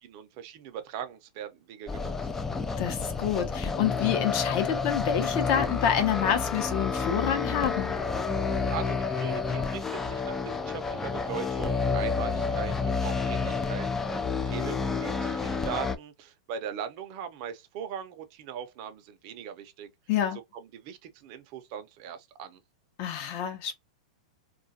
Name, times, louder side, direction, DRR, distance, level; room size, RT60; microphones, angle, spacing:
voice 1, 0.0-2.1 8.7-13.9 14.4-19.9 20.7-22.6, right 8 dB, 45° right, 0.6 m, -39 dB
sound 1, 1.9-16.0, left 4 dB, 10° left, 0.3 m, -30 dB
voice 2, 2.8-7.9 20.1-20.4 23.0-23.7, left 9 dB, 45° left, 0.8 m, -28 dB
2.4 x 2.2 x 2.6 m
hypercardioid pair, 140°, 4 cm